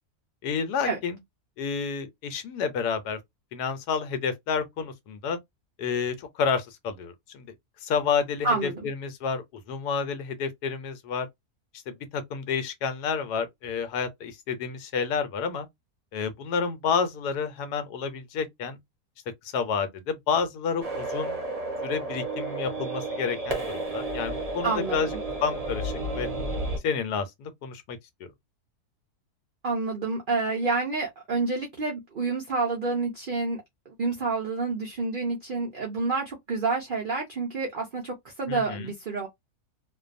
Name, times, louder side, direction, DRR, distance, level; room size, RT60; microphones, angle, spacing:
voice 1, 0.4-1.2 1.6-3.2 3.5-5.4 5.8-7.5 7.8-11.3 11.9-15.7 16.1-18.8 19.4-21.4 21.8-25.1 25.4-26.3 26.8-28.0 38.5-38.9, left 6 dB, 90° left, 1.2 m, -30 dB
voice 2, 8.4-8.8 24.6-25.2 29.6-39.3, right 3 dB, 85° right, 0.4 m, -29 dB
sound 1, 20.8-26.8, right 2 dB, 40° right, 0.5 m, -32 dB
2.6 x 2.2 x 2.5 m
omnidirectional pair, 1.6 m